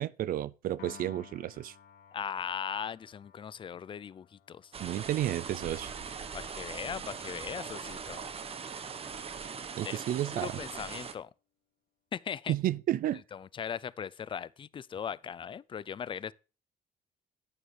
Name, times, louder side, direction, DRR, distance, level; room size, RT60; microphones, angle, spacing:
voice 1, 0.0-1.7 4.8-5.9 9.8-10.6 12.5-13.2, right 13 dB, 60° right, 0.5 m, -32 dB
Piano, 0.8-7.2, left 8 dB, 65° left, 1.5 m, -57 dB
voice 2, 2.1-4.7 6.3-8.2 9.8-10.0 10.3-11.3 12.1-12.5 13.3-16.3, left 7 dB, 30° left, 0.5 m, -39 dB
sound 1, 4.7-11.1, right 6 dB, 35° right, 1.2 m, -41 dB
11.0 x 9.0 x 3.3 m
cardioid pair, 110°, 17 cm